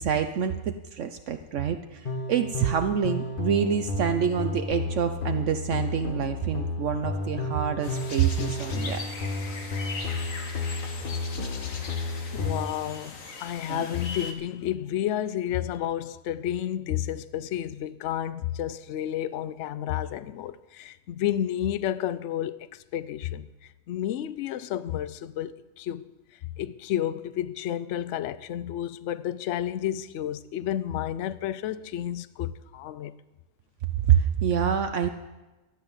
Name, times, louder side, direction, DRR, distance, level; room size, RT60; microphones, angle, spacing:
voice 1, 0.0-9.0 13.7-13.8 34.1-35.1, right 8 dB, 70° right, 1.0 m, -26 dB
sound 1, 2.0-12.7, left 3 dB, 45° left, 1.4 m, -32 dB
sound 2, 7.8-14.3, left 4 dB, 85° left, 1.8 m, -40 dB
voice 2, 12.3-26.1 26.4-33.1, left 11 dB, 70° left, 0.9 m, -31 dB
13.5 x 10.0 x 7.2 m
omnidirectional pair, 1.4 m